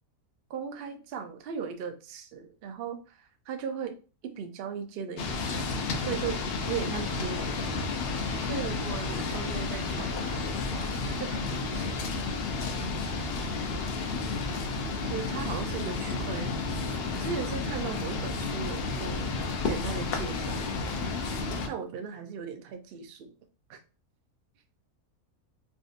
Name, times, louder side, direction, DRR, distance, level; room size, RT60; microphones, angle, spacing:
voice 1, 0.5-4.0 4.2-7.8 8.4-11.9 15.0-19.3 19.6-20.9 21.7-23.3 23.7-23.8, right 6 dB, 65° right, 7 dB, 0.5 m, -38 dB
sound 1, 5.2-21.7, left 3 dB, 65° left, 0.6 m, -31 dB
3.7 x 2.6 x 2.4 m, 0.35 s
omnidirectional pair, 1.5 m